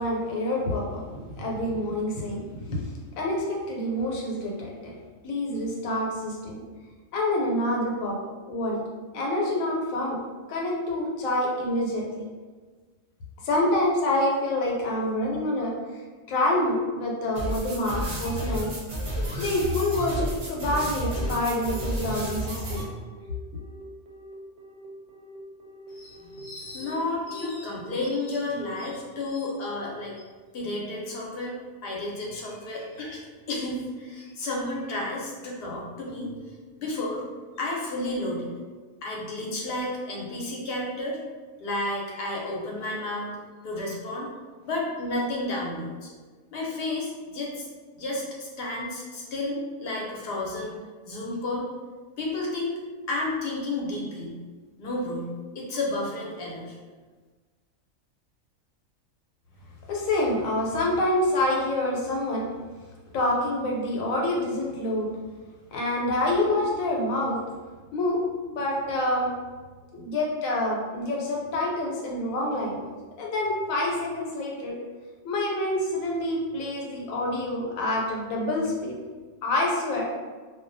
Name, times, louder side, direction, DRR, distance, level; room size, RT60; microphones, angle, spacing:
voice 1, 0.0-2.8 3.2-5.0 5.2-6.6 7.1-8.2 8.5-8.8 9.1-10.2 10.5-12.2 13.4-16.0 16.3-18.7 19.4-22.8 59.9-62.5 63.1-65.1 65.7-67.4 67.9-69.3 69.9-72.9 73.2-74.8 75.2-79.0 79.4-80.1, left 1 dB, 85° left, -2 dB, 1.0 m, -27 dB
sound 1, 17.3-22.8, equal, 50° right, 0.5 m, -31 dB
Telephone, 20.5-27.9, equal, 70° right, 0.8 m, -48 dB
voice 2, 25.9-30.1 30.5-33.2 33.5-36.3 36.8-37.2 37.6-38.5 39.0-41.2 41.6-43.3 43.6-44.3 44.6-46.1 46.5-47.7 48.0-50.8 51.1-51.7 52.2-52.7 53.1-54.3 54.8-55.3 55.5-56.8, left 2 dB, 60° left, -3 dB, 0.7 m, -31 dB
2.3 x 2.1 x 2.5 m, 1.4 s
omnidirectional pair, 1.4 m